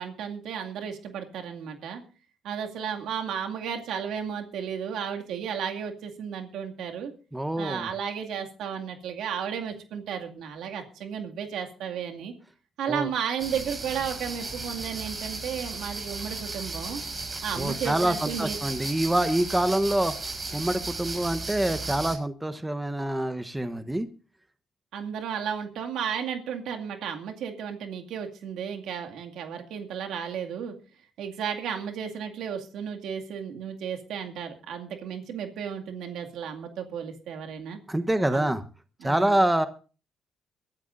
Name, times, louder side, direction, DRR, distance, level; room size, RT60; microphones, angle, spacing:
voice 1, 0.0-2.0 2.4-7.1 7.6-12.3 12.8-17.0 17.4-18.6 24.9-30.8 31.2-37.8 38.3-38.5 39.0-39.4, right 7 dB, 80° right, 3 dB, 2.2 m, -33 dB
voice 2, 7.3-7.9 12.9-13.1 17.6-20.1 20.5-24.1 37.9-38.6 39.0-39.7, right 1 dB, 10° right, 10 dB, 1.1 m, -26 dB
sound 1, 13.4-22.2, right 3 dB, 30° right, 5.9 m, -35 dB
22.5 x 12.5 x 2.6 m, 0.36 s
cardioid pair, 90°, 0 cm